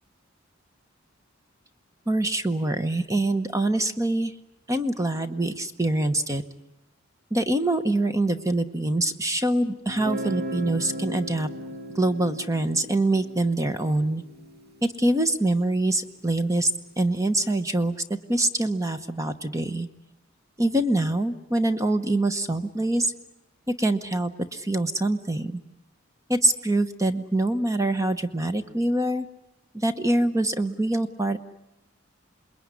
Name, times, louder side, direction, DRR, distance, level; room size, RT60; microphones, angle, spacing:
voice 1, 2.1-4.3 4.7-6.4 7.3-11.5 12.0-14.2 14.8-16.7 17.0-17.9 18.3-19.9 20.6-23.1 23.8-25.6 26.3-29.3 29.7-31.4, right 1 dB, 15° right, 9 dB, 1.0 m, -24 dB
Guitar, 9.9-15.6, equal, 50° right, 2.3 m, -37 dB
28.0 x 21.0 x 9.7 m, 0.88 s
head